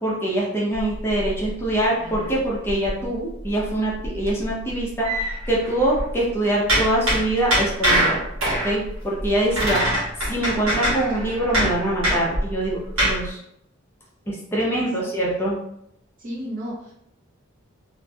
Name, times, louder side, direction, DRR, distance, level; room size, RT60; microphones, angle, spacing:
voice 1, 0.0-8.2 8.6-9.8 10.3-13.4 14.3-15.6, right 1 dB, 10° left, -5 dB, 0.5 m, -24 dB
sound 1, 0.7-3.1 3.4-3.7 4.0-6.2 6.7-13.3, equal, 70° right, 1.2 m, -24 dB
voice 2, 14.7-15.1 16.2-16.9, equal, 40° right, -4 dB, 0.8 m, -33 dB
2.8 x 2.5 x 2.3 m, 0.75 s
head